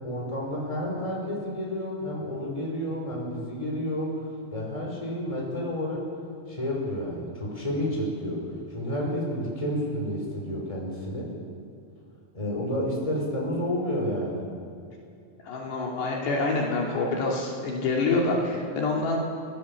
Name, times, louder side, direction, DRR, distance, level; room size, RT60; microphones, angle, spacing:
voice 1, 0.0-4.1 4.5-6.1 6.5-8.4 8.7-11.3 12.3-14.4, equal, 5° left, -2 dB, 5.4 m, -30 dB
voice 2, 15.4-19.2, left 3 dB, 65° left, -2 dB, 4.8 m, -26 dB
30.0 x 18.0 x 7.5 m, 2.4 s
omnidirectional pair, 5.3 m